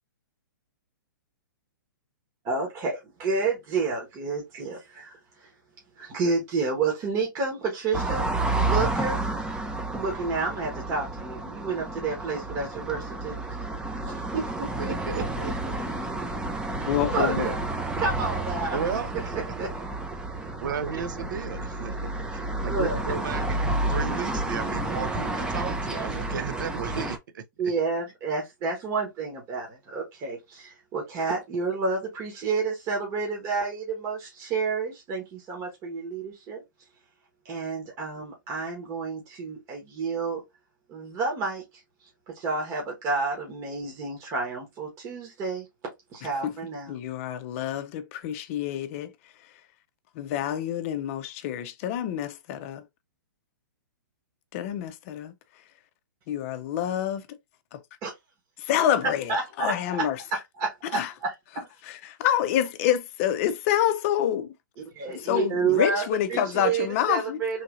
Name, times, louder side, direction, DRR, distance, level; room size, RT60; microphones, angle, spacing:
voice 1, 2.4-5.5 6.0-8.3 8.6-9.2 9.9-13.4 14.0-15.2 16.8-17.6 18.0-19.0 19.3-19.7 22.7-23.0 27.6-36.6 37.4-40.4 40.9-41.6 42.3-45.7 46.1-46.9 58.0-58.1 59.3-60.1 60.6-61.3 64.9-67.6, right 4 dB, 30° right, 1.1 m, -30 dB
sound 1, 7.9-27.2, right 2 dB, 5° right, 0.5 m, -30 dB
voice 2, 14.8-15.7 17.4-17.6 18.7-19.5 20.6-27.7, right 6 dB, 70° right, 0.6 m, -34 dB
voice 3, 16.8-17.5 46.2-46.5 46.9-49.7 50.1-52.9 54.5-55.7 56.3-57.2 57.7-57.8 58.6-60.4 60.9-61.1 61.8-64.6 65.1-67.4, left 11 dB, 40° left, 0.5 m, -28 dB
3.2 x 2.7 x 2.5 m
hypercardioid pair, 135°, 11 cm